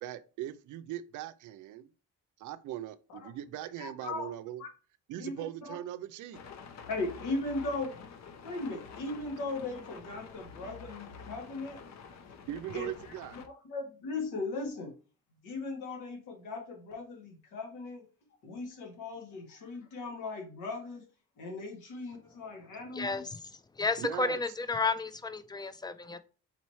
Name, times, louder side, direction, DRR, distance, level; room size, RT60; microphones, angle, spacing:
voice 1, 0.0-1.9 2.4-4.6 5.1-6.4 12.5-13.4 24.0-24.4, right 12 dB, 80° right, 0.5 m, -40 dB
voice 2, 3.8-4.3 4.6-4.7 5.2-5.8 6.9-8.0 8.4-11.8 12.3-12.4 12.7-12.9 13.4-14.9 15.4-18.1 18.4-21.1 21.4-23.2, left 3 dB, 85° left, 1.6 m, -38 dB
sound 1, 6.3-13.5, left 5 dB, 65° left, 0.7 m, -48 dB
voice 3, 22.9-23.4 23.7-26.2, left 3 dB, 15° left, 0.4 m, -32 dB
4.1 x 3.1 x 4.1 m
cardioid pair, 90°, 30 cm